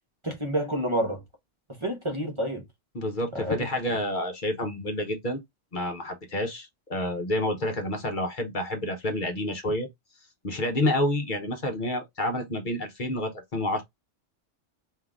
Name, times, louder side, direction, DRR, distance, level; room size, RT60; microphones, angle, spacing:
voice 1, 0.2-1.2 1.8-2.6 3.4-3.6, right 1 dB, 30° right, 1.0 m, -28 dB
voice 2, 2.9-5.4 5.7-9.9 10.4-13.8, left 1 dB, 50° left, 1.0 m, -29 dB
3.7 x 2.6 x 3.6 m
omnidirectional pair, 1.2 m